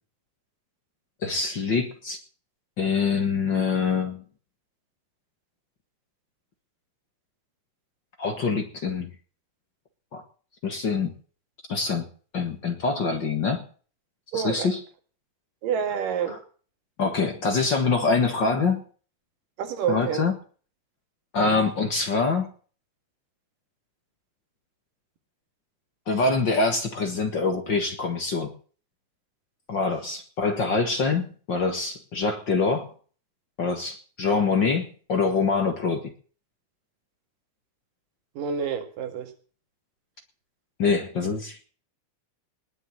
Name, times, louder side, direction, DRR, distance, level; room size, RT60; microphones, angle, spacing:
voice 1, 1.2-2.2 2.8-4.2 8.2-9.1 10.1-10.2 10.6-11.1 11.7-12.1 12.3-13.6 14.3-14.8 16.3-16.4 17.0-18.8 19.9-20.4 21.3-22.5 26.1-28.5 29.7-32.9 33.6-36.1 40.8-41.7, left 4 dB, 45° left, 1.8 m, -25 dB
voice 2, 14.3-14.7 15.6-16.4 19.6-20.2 38.4-39.3, right 7 dB, 90° right, 3.5 m, -28 dB
19.5 x 6.8 x 7.7 m
omnidirectional pair, 3.7 m